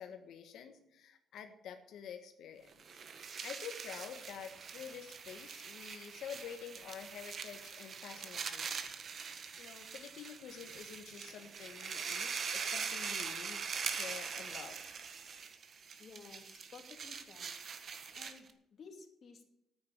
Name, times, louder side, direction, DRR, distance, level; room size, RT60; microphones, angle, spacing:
voice 1, 0.0-2.7 3.2-8.8 9.3-14.8, left 8 dB, 80° left, 6 dB, 1.4 m, -49 dB
sound 1, 2.7-18.5, right 6 dB, 55° right, 1.5 m, -43 dB
voice 2, 16.0-17.6 18.1-19.4, left 5 dB, 50° left, 4 dB, 2.6 m, -55 dB
9.5 x 8.9 x 10.0 m, 0.85 s
cardioid pair, 90°, 0 cm